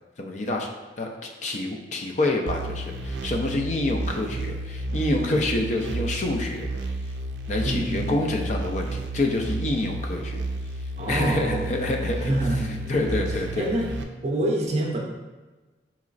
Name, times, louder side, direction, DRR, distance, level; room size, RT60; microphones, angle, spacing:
voice 1, 0.2-0.7 1.0-6.7 7.5-10.4 11.1-12.3 12.9-13.7, left 2 dB, 40° left, 2 dB, 0.4 m, -27 dB
sound 1, 2.5-14.0, right 2 dB, 90° right, 0.4 m, -32 dB
voice 2, 7.6-8.3 11.0-11.9 12.2-13.2 13.6-13.9 14.2-15.0, right 1 dB, 40° right, 0 dB, 0.5 m, -27 dB
4.8 x 3.0 x 2.5 m, 1.2 s
head